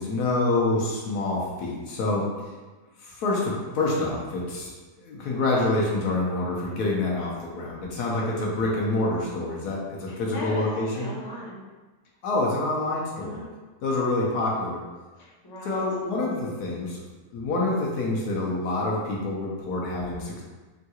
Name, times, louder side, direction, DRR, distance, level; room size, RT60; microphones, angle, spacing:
voice 1, 0.0-2.3 3.0-4.7 5.0-11.1 12.2-13.4 13.8-14.8 15.6-17.0 17.3-20.4, left 2 dB, 80° left, -3 dB, 1.3 m, -27 dB
voice 2, 10.1-11.6 13.2-13.5 15.1-15.8, left 1 dB, 25° left, -6 dB, 0.5 m, -38 dB
3.6 x 2.3 x 2.8 m, 1.3 s
omnidirectional pair, 1.7 m